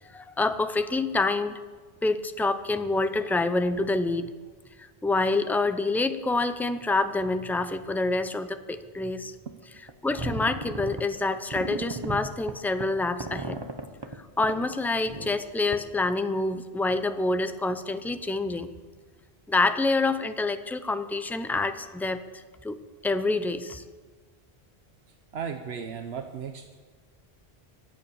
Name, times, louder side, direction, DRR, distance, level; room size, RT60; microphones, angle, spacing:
voice 1, 0.0-1.6 2.0-4.3 5.0-9.3 10.0-13.6 14.1-18.7 19.5-23.8, left 3 dB, ahead, 10 dB, 0.5 m, -27 dB
sound 1, 9.9-10.0 10.2-11.0 11.5-14.2 14.4-14.6 15.1-15.4 15.7-15.8, right 2 dB, 25° right, 1.0 m, -35 dB
voice 2, 25.3-26.8, right 6 dB, 80° right, 6 dB, 1.1 m, -36 dB
23.0 x 8.3 x 7.0 m, 1.5 s
omnidirectional pair, 1.0 m